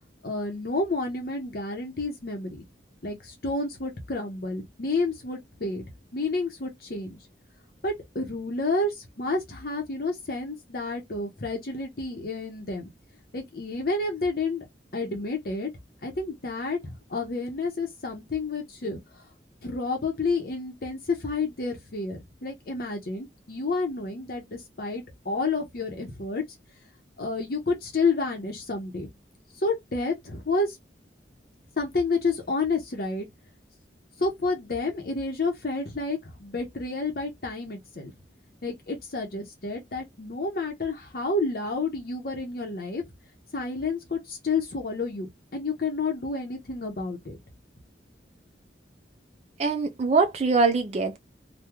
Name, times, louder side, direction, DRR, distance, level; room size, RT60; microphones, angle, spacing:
voice 1, 0.2-2.6 3.0-5.9 6.1-7.2 7.8-12.9 13.3-14.6 14.9-15.7 16.0-19.0 19.6-26.4 27.2-29.1 29.5-30.8 31.8-33.3 34.2-38.1 38.6-43.0 43.5-47.4, left 3 dB, 55° left, 0.8 m, -30 dB
voice 2, 49.6-51.2, right 4 dB, 35° right, 0.4 m, -23 dB
2.9 x 2.2 x 3.5 m
head